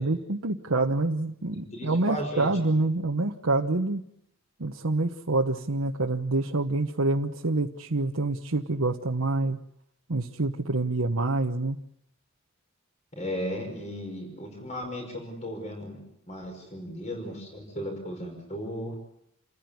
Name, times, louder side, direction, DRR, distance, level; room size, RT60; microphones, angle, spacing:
voice 1, 0.0-4.0 4.6-9.6 10.1-11.8, right 2 dB, 90° right, 1 dB, 1.2 m, -27 dB
voice 2, 1.7-2.5 13.1-16.0 16.3-18.9, equal, 35° left, 4 dB, 5.6 m, -35 dB
28.5 x 15.0 x 9.6 m, 0.78 s
head